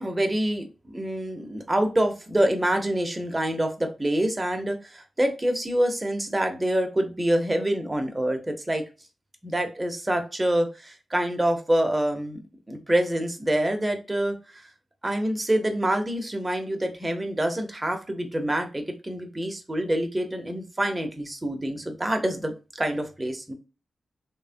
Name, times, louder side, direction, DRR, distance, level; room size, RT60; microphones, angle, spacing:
voice 1, 0.0-8.8 9.4-12.4 12.7-14.4 15.0-23.5, right 1 dB, 20° right, 5 dB, 0.8 m, -26 dB
3.1 x 2.1 x 2.5 m, 0.32 s
cardioid pair, 60°, 0 cm